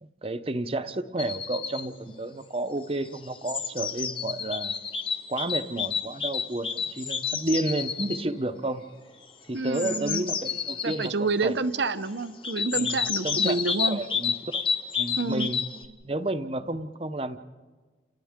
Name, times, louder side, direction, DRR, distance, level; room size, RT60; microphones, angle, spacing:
voice 1, 0.0-4.7 5.3-8.8 9.5-11.6 12.7-13.6 13.9-14.6 15.0-15.6 16.0-17.4, right 2 dB, 30° right, 11 dB, 0.8 m, -31 dB
sound 1, 1.2-1.8 2.9-8.2 9.6-11.1 12.4-15.8, left 6 dB, 30° left, 1.2 m, -30 dB
voice 2, 9.5-10.2 10.8-14.0 15.2-15.5, right 3 dB, 80° right, 11 dB, 0.9 m, -28 dB
29.5 x 29.0 x 3.7 m, 1.4 s
head